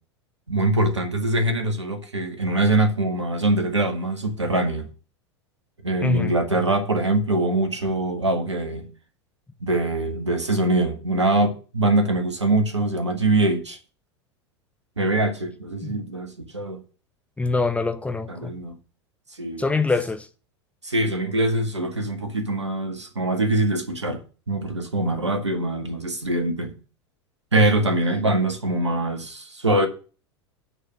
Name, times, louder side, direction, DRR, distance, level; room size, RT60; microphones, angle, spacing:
voice 1, 0.5-4.9 5.8-8.9 9.6-13.8 15.0-16.8 18.3-18.8 19.4-19.6 20.8-24.2 24.5-26.8 27.5-29.9, right 2 dB, 80° right, 1.9 m, -23 dB
voice 2, 6.0-6.3 15.8-16.0 17.4-18.6 19.6-20.3, left 3 dB, 10° left, 0.8 m, -24 dB
9.1 x 4.7 x 7.6 m
figure-of-eight pair, 85°, 14 cm